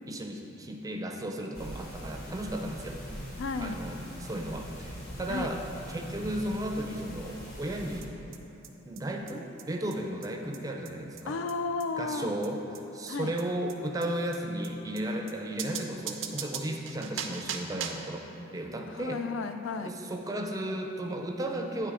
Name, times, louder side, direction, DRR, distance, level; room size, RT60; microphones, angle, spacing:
voice 1, 0.1-3.0 3.6-5.6 5.9-8.1 8.9-11.4 12.0-12.6 12.9-18.3 18.5-19.2 19.8-21.9, right 1 dB, 20° right, 2 dB, 0.4 m, -34 dB
sound 1, 1.5-8.0, equal, 50° left, 1.3 m, -42 dB
voice 2, 3.4-3.8 5.3-5.5 11.3-12.3 13.1-13.3 16.7-16.8 18.9-19.9, left 4 dB, 80° left, 9 dB, 0.4 m, -33 dB
sound 2, 8.0-8.1 8.3-8.4 8.6-8.7 9.0-9.1 9.3-9.4 9.6-9.7 9.9-10.0 10.2-10.3 10.5-10.6 10.9-11.0 11.2-11.3 11.5-11.6 11.8-11.9 12.1-12.2 12.4-12.5 12.8-12.9 13.1-13.2 13.4-13.5 13.7-13.8 14.0-14.1 14.3-14.4 14.6-14.7 15.0-15.1 15.3-15.4 15.6-18.1, right 8 dB, 85° right, 0.5 m, -38 dB
9.4 x 3.3 x 4.8 m, 3.0 s
head